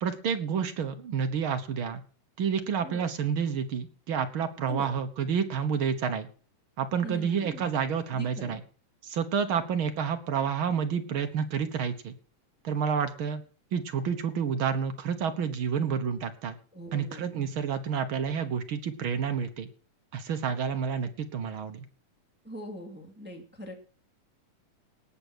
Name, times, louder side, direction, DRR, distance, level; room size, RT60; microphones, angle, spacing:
voice 1, 0.0-2.0 2.4-6.3 6.8-8.6 9.0-12.1 12.6-13.4 13.7-16.5 16.9-19.7 20.1-21.8, right 7 dB, 60° right, 8 dB, 1.4 m, -29 dB
voice 2, 4.7-5.0 7.0-7.7 8.1-8.6 16.7-17.3 22.4-23.7, equal, 5° right, 3 dB, 2.0 m, -42 dB
18.5 x 6.9 x 6.2 m, 0.39 s
omnidirectional pair, 3.7 m